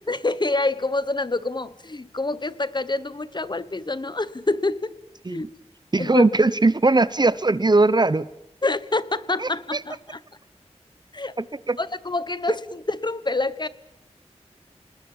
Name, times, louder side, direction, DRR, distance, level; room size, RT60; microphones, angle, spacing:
voice 1, 0.1-4.9 5.3-5.5 6.0-6.3 8.6-10.2 11.1-11.3 11.8-13.7, left 2 dB, 40° left, 15 dB, 1.1 m, -26 dB
voice 2, 5.9-8.3 9.4-9.8 11.4-11.8, right 2 dB, 35° right, 17 dB, 0.9 m, -20 dB
28.0 x 20.0 x 7.3 m, 0.82 s
wide cardioid pair, 65°, 12 cm